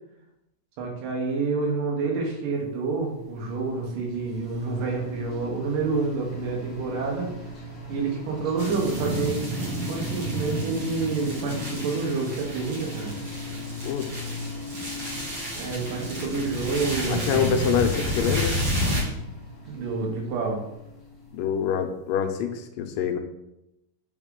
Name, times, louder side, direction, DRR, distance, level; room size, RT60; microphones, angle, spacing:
voice 1, 0.8-7.3 7.9-9.4 9.9-13.2 15.5-17.6 19.7-20.6, right 4 dB, 75° right, 0 dB, 2.6 m, -28 dB
sound 1, 2.8-21.9, left 2 dB, 60° left, 0.6 m, -39 dB
sound 2, 8.6-19.0, equal, 50° right, 2.2 m, -31 dB
voice 2, 17.1-18.6 21.3-23.2, left 7 dB, 85° left, 6 dB, 2.2 m, -25 dB
8.2 x 3.6 x 3.7 m, 0.85 s
omnidirectional pair, 4.0 m